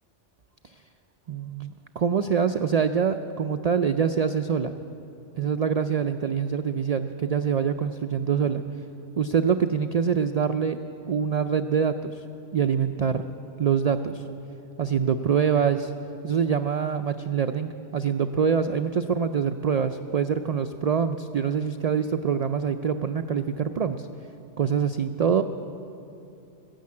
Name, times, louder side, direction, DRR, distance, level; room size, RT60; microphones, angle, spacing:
voice 1, 1.3-4.7 5.4-8.6 9.2-10.8 11.1-12.2 12.5-13.3 13.6-14.2 14.8-15.9 16.2-24.1 24.6-25.4, right 7 dB, 90° right, 8 dB, 0.3 m, -25 dB
15.0 x 10.0 x 8.5 m, 2.7 s
omnidirectional pair, 1.2 m